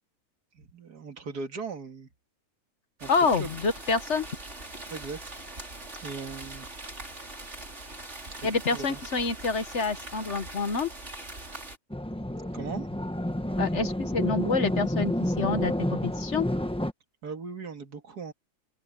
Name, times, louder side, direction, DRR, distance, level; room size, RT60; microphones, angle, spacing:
voice 1, 0.5-2.1 3.0-3.5 4.9-5.2 6.0-6.7 8.3-9.0 12.5-13.0 17.2-18.3, right 4 dB, 90° right, 2.4 m, -39 dB
sound 1, 3.0-11.8, right 2 dB, 45° right, 4.6 m, -42 dB
voice 2, 3.1-4.3 8.4-10.9 13.6-16.5, left 4 dB, 50° left, 1.5 m, -27 dB
sound 2, 11.9-16.9, left 1 dB, 5° left, 0.7 m, -29 dB
open air
omnidirectional pair, 1.6 m